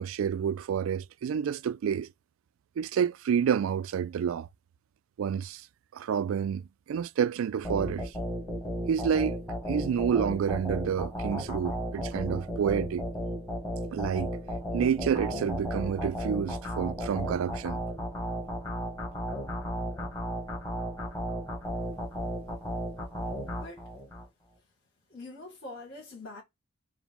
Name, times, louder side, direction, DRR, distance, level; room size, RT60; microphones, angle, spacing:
voice 1, 0.0-2.1 2.8-4.5 5.2-5.7 5.9-8.1 8.9-9.4 9.6-13.0 13.9-14.4 14.7-17.8, right 7 dB, 75° right, 0.3 m, -29 dB
sound 1, 7.6-24.3, equal, 15° left, 1.5 m, -34 dB
voice 2, 23.5-23.9 25.1-26.4, left 2 dB, 65° left, 1.8 m, -44 dB
4.7 x 2.1 x 3.5 m
head